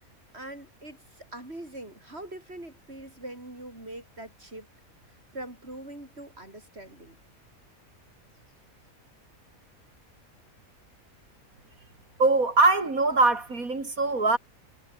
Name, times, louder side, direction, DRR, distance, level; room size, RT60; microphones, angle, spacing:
voice 1, 0.3-4.7 5.3-7.2, right 1 dB, 45° right, 7.4 m, -42 dB
voice 2, 12.2-14.4, right 3 dB, 75° right, 4.6 m, -22 dB
omnidirectional pair, 1.5 m